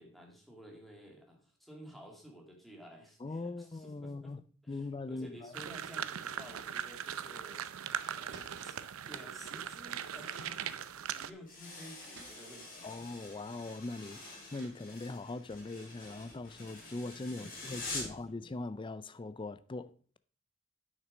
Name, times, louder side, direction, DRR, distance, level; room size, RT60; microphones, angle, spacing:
voice 1, 0.0-4.3 4.6-7.7 8.1-8.8 9.1-13.2 17.4-17.5 17.9-18.2, equal, ahead, 2.0 m, -53 dB
voice 2, 3.2-5.5 12.8-20.2, left 2 dB, 25° left, 0.4 m, -41 dB
sound 1, 5.5-11.3, right 9 dB, 80° right, 0.6 m, -40 dB
sound 2, 7.9-8.9 9.7-9.8 10.1-10.7 11.5-11.6 12.0-12.6 14.0-14.1 14.4-14.8, right 4 dB, 55° right, 2.0 m, -56 dB
sound 3, 11.5-18.2, left 2 dB, 40° left, 3.6 m, -46 dB
9.1 x 6.5 x 5.0 m
head